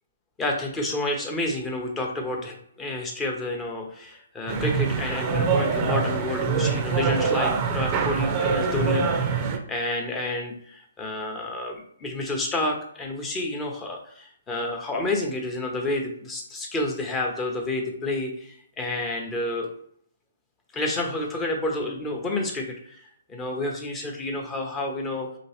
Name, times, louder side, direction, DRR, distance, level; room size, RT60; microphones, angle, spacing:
voice 1, 0.4-19.7 20.7-25.3, left 2 dB, 15° left, 1 dB, 0.7 m, -30 dB
sound 1, 4.5-9.6, right 5 dB, 30° right, 0.5 m, -24 dB
3.0 x 2.9 x 2.9 m, 0.63 s
hypercardioid pair, 135°, 0 cm